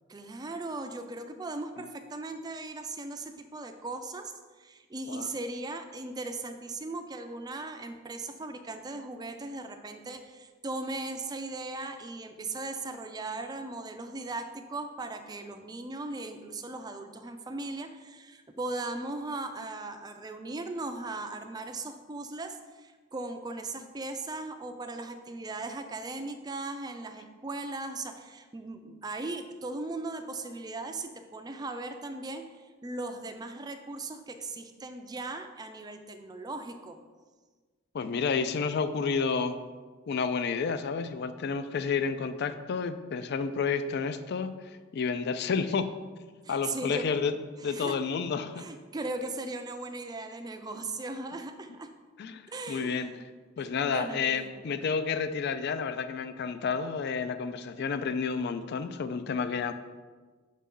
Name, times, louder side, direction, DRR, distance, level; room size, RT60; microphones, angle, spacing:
voice 1, 0.1-4.3 4.6-37.0 46.4-47.1 47.6-48.0 48.6-51.9 52.5-53.3 53.6-54.6, right 2 dB, 20° right, 7 dB, 0.4 m, -38 dB
voice 2, 37.9-39.6 40.1-45.9 46.5-47.3 47.6-48.7 52.2-52.4 52.7-53.1 53.6-59.7, left 5 dB, 55° left, 11 dB, 0.4 m, -30 dB
6.0 x 5.6 x 3.7 m, 1.4 s
head